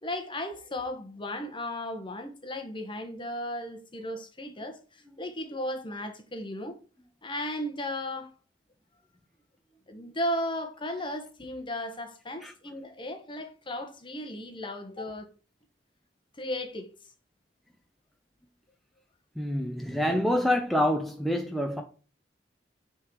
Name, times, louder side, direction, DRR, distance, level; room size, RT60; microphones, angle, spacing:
voice 1, 0.0-6.8 7.2-8.3 9.9-15.3 16.4-16.9, left 1 dB, 25° left, 1.1 m, -35 dB
voice 2, 19.4-21.8, left 1 dB, ahead, 0.6 m, -27 dB
9.1 x 3.8 x 4.6 m
head